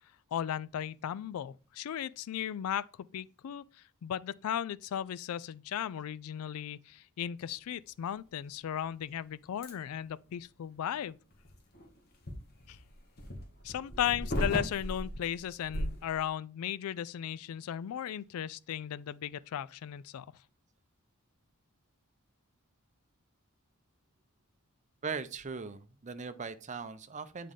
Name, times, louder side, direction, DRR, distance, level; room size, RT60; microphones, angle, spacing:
voice 1, 0.3-3.6 4.0-11.2 12.7-12.8 13.6-20.3, left 10 dB, 80° left, 0.3 m, -36 dB
sound 1, 9.6-9.7 11.3-16.3, equal, 45° left, 1.5 m, -37 dB
voice 2, 25.0-27.5, right 5 dB, 35° right, 0.6 m, -39 dB
8.3 x 3.7 x 3.6 m
head